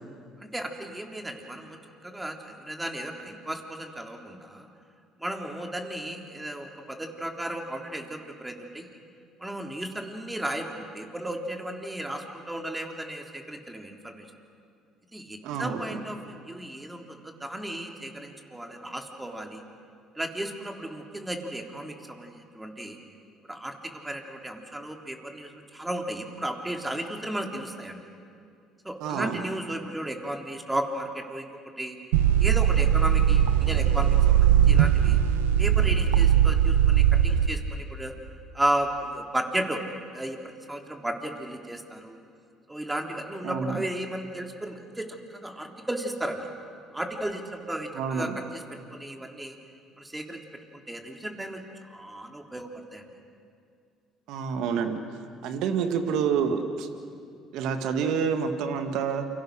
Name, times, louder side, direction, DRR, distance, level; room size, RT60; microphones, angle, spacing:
voice 1, 0.4-4.7 5.2-8.9 9.4-14.3 15.1-19.6 20.2-23.0 23.5-28.0 28.9-31.5 31.8-32.0 32.4-35.2 35.6-38.1 38.5-39.8 40.1-40.4 40.7-42.2 42.7-46.5 46.9-48.6 48.9-49.6 50.0-50.4 50.7-51.6 51.9-53.0, right 1 dB, 10° right, 3 dB, 3.4 m, -34 dB
voice 2, 15.4-16.0 29.0-29.4 43.4-43.8 47.9-48.3 54.3-55.0 55.4-56.9 57.5-59.3, right 6 dB, 70° right, 7 dB, 2.1 m, -28 dB
sound 1, 32.1-37.5, right 9 dB, 90° right, 0.9 m, -20 dB
29.0 x 24.5 x 6.4 m, 2.4 s
hypercardioid pair, 65°, 0 cm